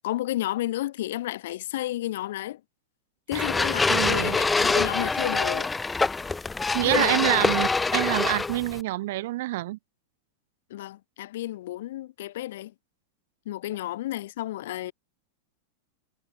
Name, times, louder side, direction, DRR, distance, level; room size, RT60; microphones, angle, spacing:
voice 1, 0.0-2.6 3.3-5.7 6.8-7.5 10.7-12.7 13.5-14.9, left 15 dB, 60° left, 2.4 m, -32 dB
sound 1, 3.3-8.8, left 3 dB, 5° left, 1.5 m, -25 dB
voice 2, 3.9-4.4 6.7-9.8, right 17 dB, 55° right, 8.0 m, -27 dB
supercardioid pair, 170°, 0 cm